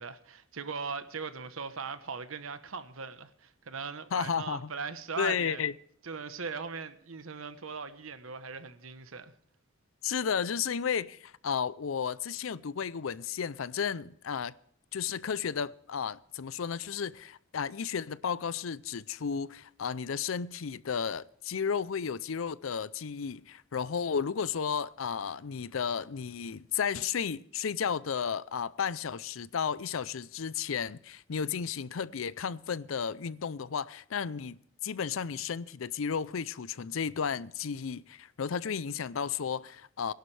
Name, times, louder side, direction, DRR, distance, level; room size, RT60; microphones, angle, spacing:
voice 1, 0.0-5.6 6.0-9.3, right 5 dB, 85° right, 1.0 m, -39 dB
voice 2, 4.1-4.7 5.2-5.7 10.0-14.5 14.9-34.6 34.8-40.1, left 7 dB, 80° left, 0.5 m, -33 dB
20.5 x 11.5 x 3.3 m
head